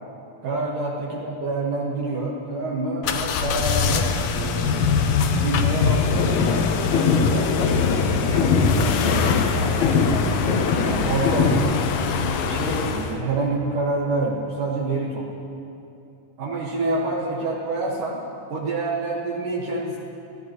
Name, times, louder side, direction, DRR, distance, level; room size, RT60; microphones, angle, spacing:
voice 1, 0.4-4.9 5.3-7.5 8.1-11.7 12.4-15.3 16.4-18.2 18.5-20.0, right 2 dB, 70° right, -5 dB, 3.0 m, -28 dB
sound 1, 3.0-13.2, left 6 dB, 80° left, 1.5 m, -23 dB
sound 2, 5.8-11.8, left 4 dB, 65° left, 2.0 m, -23 dB
26.0 x 16.5 x 3.0 m, 2.7 s
omnidirectional pair, 4.1 m